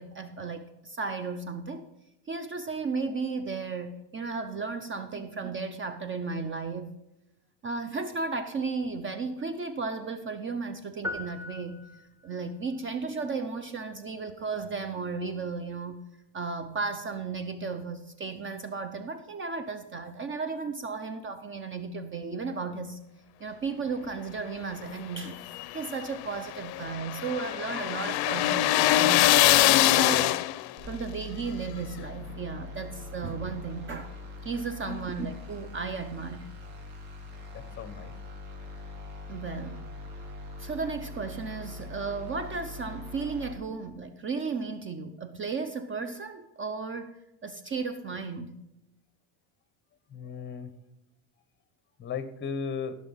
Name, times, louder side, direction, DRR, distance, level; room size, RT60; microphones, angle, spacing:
voice 1, 0.0-1.9 2.3-7.0 7.6-11.8 12.2-16.0 16.3-23.0 23.4-25.4 25.7-30.4 30.8-34.1 34.4-36.5 39.3-39.9 40.6-48.6, right 4 dB, 30° right, 10 dB, 0.6 m, -34 dB
sound 1, 11.0-12.5, left 2 dB, 5° right, 1.5 m, -39 dB
sound 2, 25.3-30.8, left 16 dB, 60° left, 0.6 m, -23 dB
sound 3, 30.8-43.5, left 2 dB, 70° right, 3.6 m, -42 dB
voice 2, 37.5-38.1 50.1-50.7 52.0-53.0, left 6 dB, 25° left, 13 dB, 1.0 m, -36 dB
14.5 x 6.2 x 5.6 m, 0.90 s
cardioid pair, 135°, 44 cm